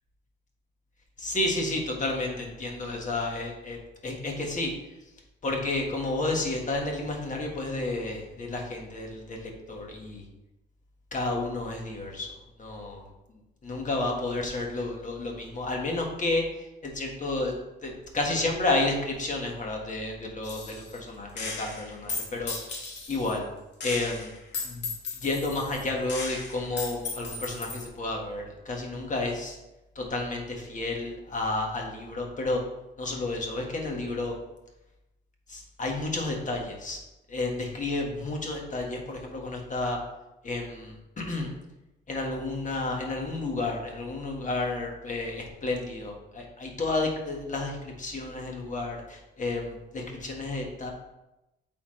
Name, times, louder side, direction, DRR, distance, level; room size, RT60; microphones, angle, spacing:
voice 1, 1.2-4.7 5.4-10.2 11.1-12.3 12.6-17.5 17.8-22.5 23.1-23.5 23.8-24.3 24.6-24.9 25.1-29.6 29.9-32.6 33.0-34.3 35.5-37.0 37.3-40.0 40.4-41.5 42.1-50.9, left 2 dB, 40° left, 1 dB, 1.5 m, -31 dB
Gunshot gunfire, 20.4-21.0 21.4-23.4 23.8-27.9, left 4 dB, 65° left, 1.6 m, -36 dB
8.1 x 4.2 x 3.2 m, 0.96 s
cardioid pair, 90°, 20 cm